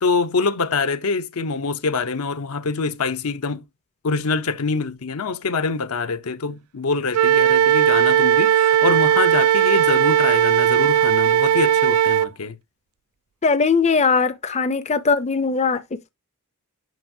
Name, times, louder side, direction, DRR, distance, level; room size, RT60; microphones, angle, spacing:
voice 1, 0.0-3.6 4.0-12.6, left 4 dB, 75° left, 0.7 m, -24 dB
Wind instrument woodwind instrument, 7.1-12.3, right 10 dB, 75° right, 0.3 m, -17 dB
voice 2, 13.4-16.1, left 4 dB, 30° left, 0.5 m, -20 dB
9.2 x 5.5 x 2.7 m
head